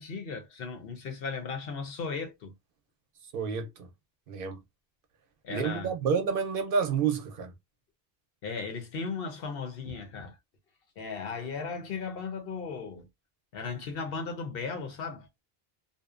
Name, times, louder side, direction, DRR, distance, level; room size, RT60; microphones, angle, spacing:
voice 1, 0.0-2.5 5.4-5.9 8.4-10.4 11.0-13.1 13.5-15.3, left 5 dB, 65° left, 0.9 m, -36 dB
voice 2, 3.3-3.9 4.3-4.6 5.5-7.5, right 6 dB, 65° right, 0.7 m, -29 dB
2.6 x 2.0 x 2.4 m
omnidirectional pair, 1.0 m